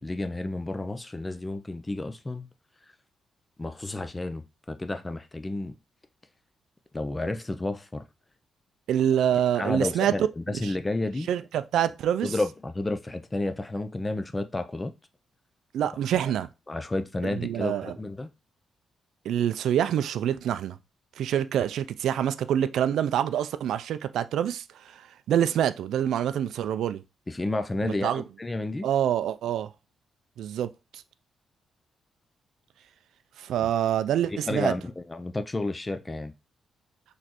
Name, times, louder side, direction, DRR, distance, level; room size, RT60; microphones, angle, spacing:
voice 1, 0.0-2.5 3.6-5.8 6.9-8.1 9.3-11.3 12.2-14.9 16.1-16.2 16.7-18.3 27.3-28.9 33.6-33.7 34.3-36.3, left 2 dB, 15° left, 0.4 m, -31 dB
voice 2, 8.9-10.1 10.6-10.7 11.3-12.3 15.7-16.5 17.4-17.9 19.3-20.8 21.2-27.0 28.0-28.2 28.8-29.7 30.4-31.0 33.4-34.7, right 10 dB, 85° right, 0.3 m, -26 dB
4.2 x 3.1 x 2.9 m
cardioid pair, 120°, 0 cm